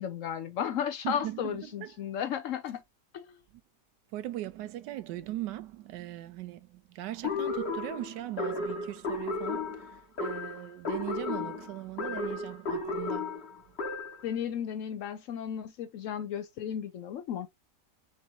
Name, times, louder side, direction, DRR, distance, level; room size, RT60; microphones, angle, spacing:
voice 1, 0.0-2.8 3.1-3.4 14.2-17.5, left 9 dB, 70° left, 0.7 m, -34 dB
voice 2, 1.0-2.1 3.5-3.6 4.1-13.8, right 14 dB, 85° right, 1.2 m, -39 dB
sound 1, 7.2-14.3, left 3 dB, 40° left, 1.3 m, -34 dB
5.2 x 2.7 x 2.8 m
omnidirectional pair, 1.8 m